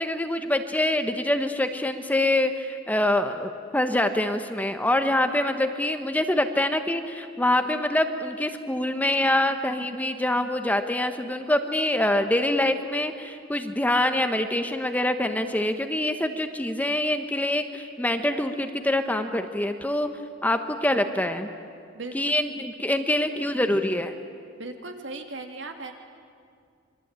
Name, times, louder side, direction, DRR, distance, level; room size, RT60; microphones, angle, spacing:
voice 1, 0.0-20.1 20.4-21.5 22.1-24.1, left 1 dB, 10° left, 7 dB, 1.1 m, -25 dB
voice 2, 24.6-25.9, right 3 dB, 70° right, 4 dB, 2.7 m, -37 dB
27.0 x 24.0 x 9.0 m, 2.3 s
head